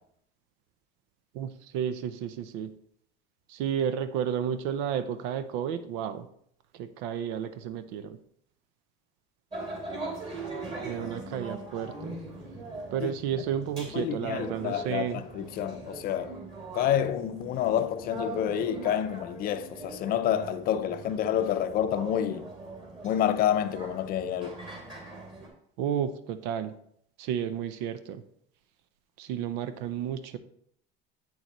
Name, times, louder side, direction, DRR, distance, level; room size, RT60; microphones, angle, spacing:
voice 1, 1.3-2.7 3.5-6.3 6.7-8.2 10.8-12.2 12.9-15.2 25.8-26.7 27.2-28.2 29.2-30.4, right 9 dB, 85° right, 0.6 m, -32 dB
sound 1, 9.5-25.5, right 2 dB, 30° right, 2.4 m, -41 dB
voice 2, 13.9-16.4 16.7-22.5 23.0-24.6, left 10 dB, 50° left, 0.5 m, -28 dB
8.0 x 6.6 x 3.0 m
cardioid pair, 145°, 20 cm